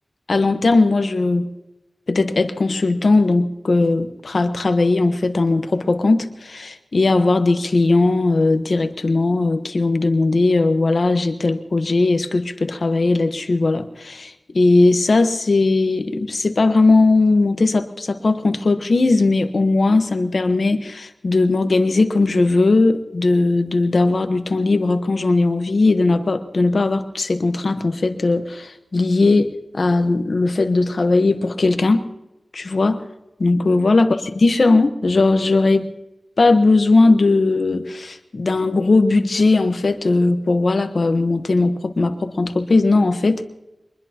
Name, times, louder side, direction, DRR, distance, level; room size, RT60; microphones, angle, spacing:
voice 1, 0.3-1.5 2.1-32.0 32.5-33.0 33.4-35.9 36.4-43.4, left 3 dB, 70° left, 8 dB, 1.1 m, -18 dB
23.5 x 20.5 x 2.9 m, 0.98 s
wide cardioid pair, 80°, 0 cm